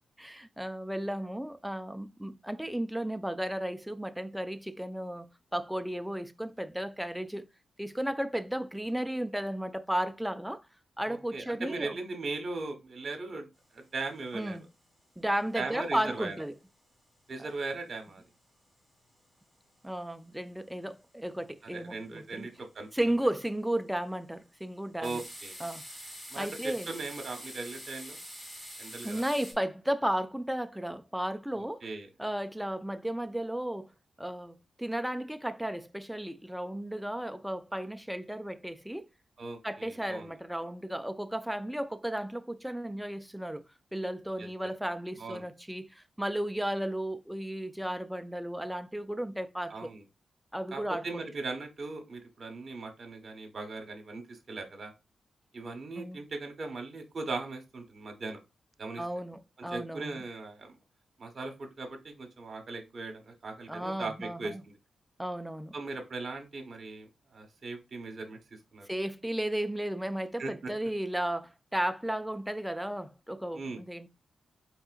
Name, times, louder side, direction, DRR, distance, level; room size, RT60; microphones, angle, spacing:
voice 1, 0.2-7.5 7.8-10.6 11.0-12.0 14.3-14.6 15.2-16.6 19.8-22.5 22.9-25.2 25.6-25.9 26.4-26.9 29.0-31.9 32.2-33.9 34.2-39.1 39.6-43.7 43.9-49.9 50.5-51.2 56.0-56.2 59.0-60.2 63.7-64.6 65.2-65.7 68.9-74.1, right 1 dB, 5° right, 0.4 m, -34 dB
voice 2, 11.1-13.5 13.7-14.6 15.5-16.3 17.3-18.2 21.7-22.9 25.0-25.6 26.3-28.2 28.8-29.2 31.5-32.1 39.4-40.3 44.4-44.5 45.2-45.5 49.7-50.0 50.7-54.9 55.5-58.4 58.8-59.0 59.6-60.7 61.2-64.7 65.7-67.1 67.3-68.4 68.7-68.9 70.4-70.7 73.5-73.8, right 3 dB, 55° right, 1.3 m, -39 dB
sound 1, 13.7-13.8 14.2-14.3 14.5-14.8 15.2-16.0 16.3-17.5 17.9-19.3 19.7-19.9 20.2-20.3 20.6-21.0 21.4-21.8 22.3-22.7 23.2-23.7 24.1-24.4 25.0-29.5, equal, 15° left, 1.7 m, -46 dB
4.2 x 3.5 x 2.5 m
cardioid pair, 70°, 0 cm